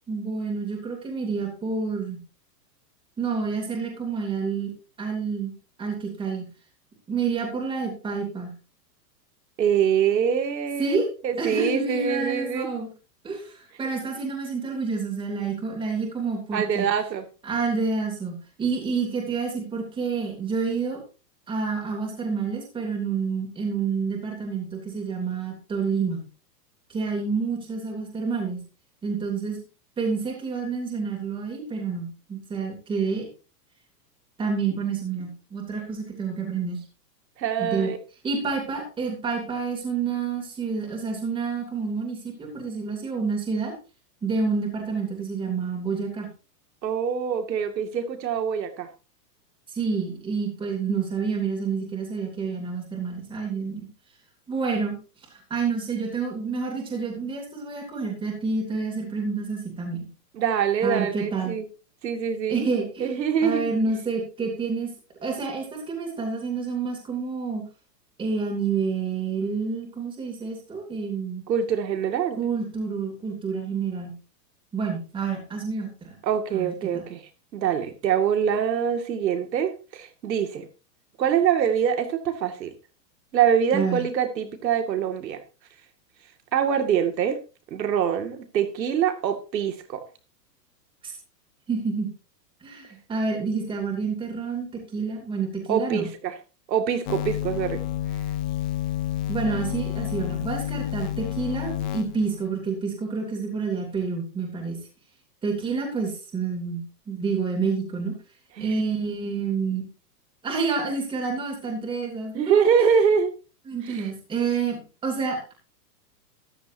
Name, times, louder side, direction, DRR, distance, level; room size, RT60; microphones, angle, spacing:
voice 1, 0.1-2.2 3.2-4.7 5.0-5.5 5.8-6.5 7.1-8.5 10.8-11.1 11.4-12.9 13.2-16.9 17.4-21.0 21.5-26.2 26.9-28.6 29.0-29.6 30.0-33.3 34.4-36.8 37.6-37.9 38.2-43.7 44.2-46.3 49.7-53.9 54.5-55.0 55.3-60.1 60.8-61.6 62.5-64.9 65.2-67.6 68.2-71.4 72.4-74.1 74.7-76.2 76.5-77.0 83.7-84.0 91.0-91.1 91.7-92.1 92.6-96.1 99.3-104.8 105.4-108.1 108.6-109.8 110.4-112.7 113.7-115.5, right 5 dB, 10° right, 1 dB, 2.7 m, -28 dB
voice 2, 9.6-11.0 11.2-12.7 16.5-17.2 37.4-38.0 46.8-48.9 60.4-61.7 62.0-62.7 63.0-63.7 71.5-72.4 76.2-77.2 77.5-80.7 81.2-82.7 83.3-85.4 86.5-87.4 87.7-90.0 95.7-96.3 96.7-97.8 108.6-108.8 112.3-113.3 113.9-114.1, right 8 dB, 90° right, 7 dB, 2.3 m, -24 dB
sound 1, 97.1-102.5, left 12 dB, 30° left, 0.7 m, -30 dB
13.5 x 11.5 x 2.7 m, 0.33 s
supercardioid pair, 165°, 49 cm